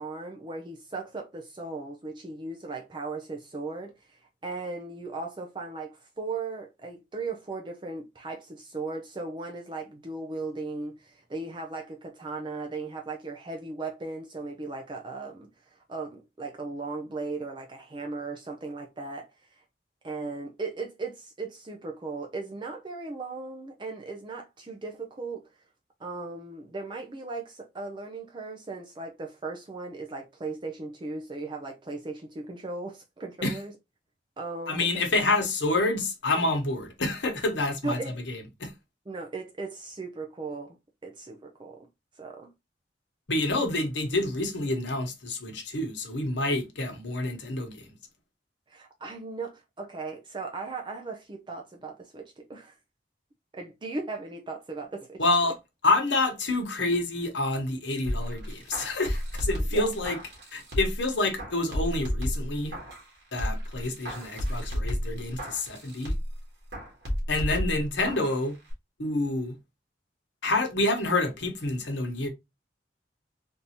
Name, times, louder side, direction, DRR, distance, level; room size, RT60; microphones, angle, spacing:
voice 1, 0.0-19.6 20.0-25.5 26.0-33.7 34.4-35.0 37.8-38.2 39.1-40.8 41.0-41.9 42.2-42.5 48.7-52.8 53.5-55.2 59.7-59.8, right 3 dB, 25° right, 0.5 m, -37 dB
voice 2, 34.7-38.0 38.3-38.7 43.3-47.9 55.2-55.5 55.8-60.2 60.5-62.8 63.3-66.1 67.3-68.5 69.0-69.6 70.4-72.3, left 2 dB, 85° left, 1.1 m, -28 dB
sound 1, 58.1-61.0 61.4-63.1 63.4-66.4 66.7-68.4 68.7-68.8, equal, 70° right, 1.7 m, -32 dB
3.6 x 2.7 x 2.8 m
head